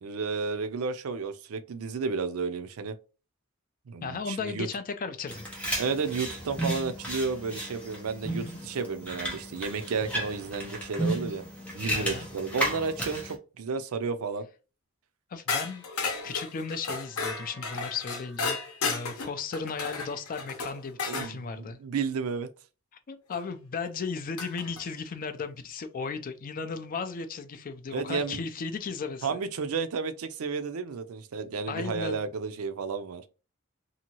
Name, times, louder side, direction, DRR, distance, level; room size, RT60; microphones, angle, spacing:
voice 1, 0.0-2.9 3.9-4.7 5.8-11.4 11.7-14.5 21.0-22.5 27.9-28.4 29.2-33.2, right 5 dB, 75° right, 0.4 m, -32 dB
voice 2, 4.0-5.5 8.3-8.6 11.9-12.3 15.3-15.8 16.2-18.6 18.8-21.8 23.1-29.4 31.7-32.3, left 5 dB, 40° left, 0.4 m, -35 dB
sound 1, 5.3-13.3, right 1 dB, 5° left, 0.8 m, -34 dB
sound 2, 15.5-21.3 23.3-23.4 24.4-24.8, left 4 dB, 80° left, 0.7 m, -33 dB
2.8 x 2.6 x 2.8 m
head